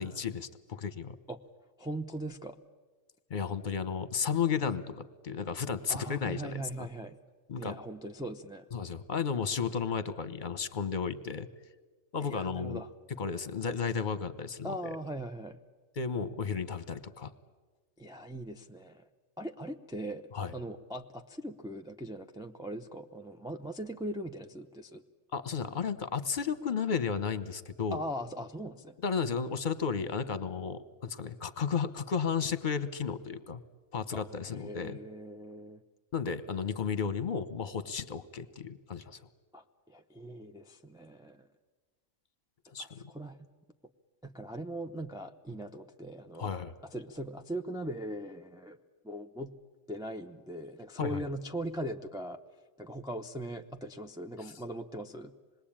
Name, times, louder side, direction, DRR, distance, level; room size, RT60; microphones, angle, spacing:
voice 1, 0.0-1.2 3.3-6.9 7.5-7.8 8.7-11.5 12.1-12.8 13.2-15.0 16.0-17.3 20.3-20.5 25.3-28.0 29.0-33.6 33.9-35.0 36.1-39.3 42.7-43.0 46.4-46.7 51.0-51.2 54.4-54.5, left 6 dB, 40° left, 12 dB, 1.1 m, -33 dB
voice 2, 1.8-2.6 5.9-7.2 7.6-8.7 12.2-12.9 14.6-15.6 18.0-19.1 19.4-25.0 27.9-28.9 34.1-34.3 34.5-35.8 39.5-41.5 42.8-42.9 43.1-43.4 44.2-46.5 46.9-48.8 49.0-49.5 49.9-52.4 52.8-55.3, right 1 dB, 5° right, 3 dB, 0.6 m, -40 dB
26.5 x 21.0 x 8.8 m, 1.3 s
omnidirectional pair, 1.3 m